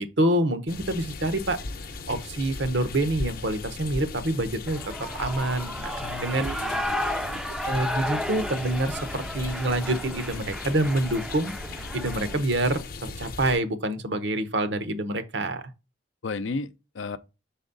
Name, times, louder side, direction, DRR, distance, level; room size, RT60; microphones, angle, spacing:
voice 1, 0.0-1.6 2.1-4.9 5.2-6.5 7.0-7.1 7.6-11.5 11.9-15.6, right 1 dB, 75° right, 0.9 m, -27 dB
sound 1, 0.7-13.6, left 3 dB, 50° left, 0.7 m, -38 dB
Shout / Cheering, 4.7-12.4, equal, 5° right, 0.4 m, -33 dB
voice 2, 6.0-7.4 16.2-17.2, left 4 dB, 90° left, 0.6 m, -35 dB
6.2 x 4.1 x 3.9 m
head